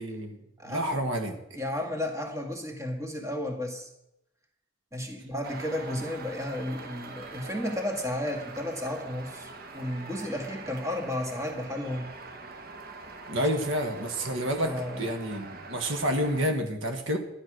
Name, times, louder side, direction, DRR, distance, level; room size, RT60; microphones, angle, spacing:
voice 1, 0.0-0.4 0.6-1.4 13.3-17.2, equal, 80° right, 5 dB, 1.9 m, -29 dB
voice 2, 0.6-1.0 1.5-3.9 4.9-12.1 14.6-15.1, left 1 dB, 15° right, 2 dB, 1.8 m, -33 dB
sound 1, 5.4-16.5, right 3 dB, 50° right, 1.4 m, -44 dB
12.0 x 10.0 x 6.3 m, 0.85 s
head